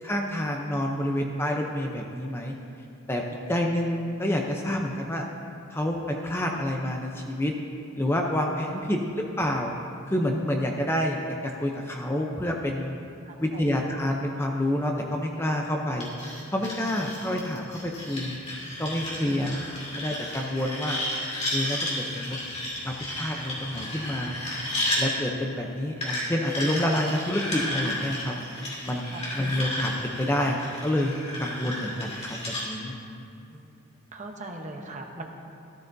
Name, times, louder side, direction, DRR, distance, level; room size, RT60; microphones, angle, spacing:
voice 1, 0.0-2.5 3.1-3.2 3.5-5.2 5.7-7.5 8.0-9.7 10.1-11.2 11.4-13.0 13.4-16.1 16.5-18.4 18.8-19.6 19.9-21.0 21.5-22.4 22.8-24.4 25.0-28.4 28.8-32.9, left 1 dB, 10° left, 1 dB, 0.6 m, -28 dB
voice 2, 13.3-13.6 29.1-29.2 33.5-33.7 34.1-35.3, right 2 dB, 35° right, 2 dB, 0.9 m, -40 dB
sound 1, 16.0-25.0 26.0-32.6, left 1 dB, 30° left, 2.7 m, -33 dB
14.0 x 13.0 x 2.7 m, 2.6 s
head